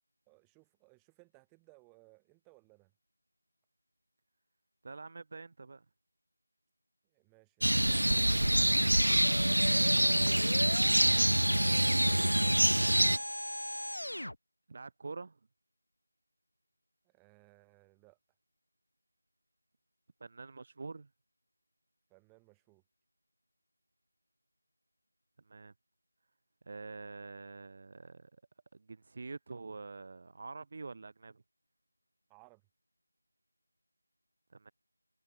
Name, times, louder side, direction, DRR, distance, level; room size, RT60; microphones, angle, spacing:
voice 1, 0.3-2.9 7.0-10.1 17.0-18.2 22.1-22.8 32.3-32.6, right 38 dB, 5° right, 4.1 m, -64 dB
voice 2, 4.8-5.9 11.0-13.2 14.7-15.4 20.2-21.1 25.4-25.7 26.6-28.4 28.7-31.4 34.5-34.7, right 3 dB, 35° right, 0.8 m, -47 dB
sound 1, 7.6-13.2, right 1 dB, 80° right, 0.4 m, -26 dB
sound 2, 9.2-14.4, left 1 dB, 85° left, 2.4 m, -39 dB
figure-of-eight pair, 170°, 0 cm